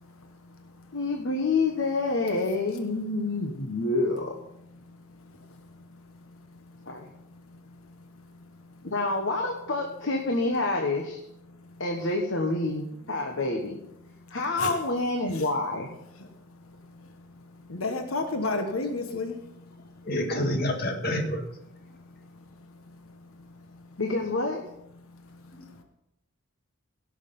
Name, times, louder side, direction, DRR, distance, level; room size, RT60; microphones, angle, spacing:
voice 1, 0.2-0.9 4.9-8.4 11.6-11.8 14.6-14.7 15.3-15.4 16.2-20.2 22.2-22.7 23.0-24.0 25.1-25.8, left 3 dB, 85° left, 6 dB, 1.2 m, -37 dB
voice 2, 0.9-4.3 6.8-7.0 8.8-11.2 11.8-13.8 14.3-15.9 24.0-24.6, left 2 dB, 60° left, 2 dB, 1.3 m, -27 dB
voice 3, 20.1-21.4, left 1 dB, 45° left, 3 dB, 1.7 m, -27 dB
16.5 x 6.5 x 5.5 m, 0.82 s
head